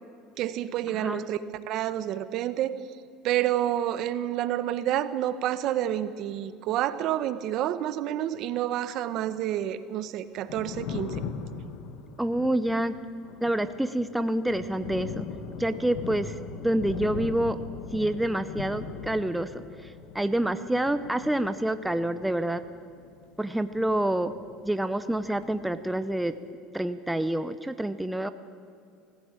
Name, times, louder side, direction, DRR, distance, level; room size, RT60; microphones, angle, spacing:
voice 1, 0.4-1.4 1.7-2.7 3.2-11.2, right 12 dB, 55° right, 13 dB, 1.0 m, -29 dB
voice 2, 0.9-1.3 12.2-13.0 13.4-15.3 15.6-16.4 16.6-17.6 17.9-22.6 23.4-24.3 24.6-26.3 26.7-28.3, right 1 dB, 5° right, 11 dB, 0.6 m, -27 dB
Thunder, 10.3-24.7 25.0-26.2, left 6 dB, 70° left, 1.8 m, -40 dB
19.0 x 15.5 x 8.9 m, 2.4 s
supercardioid pair, 125°, 0 cm